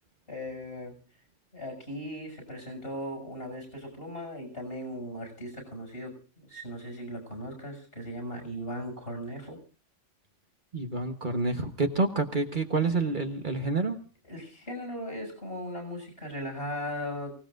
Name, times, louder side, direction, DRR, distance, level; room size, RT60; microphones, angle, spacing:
voice 1, 0.3-0.9 1.5-6.1 6.4-9.6 14.2-17.3, equal, 55° left, 3 dB, 7.2 m, -38 dB
voice 2, 10.7-14.0, right 3 dB, 40° right, 5 dB, 1.3 m, -28 dB
29.5 x 18.0 x 2.6 m, 0.35 s
omnidirectional pair, 1.3 m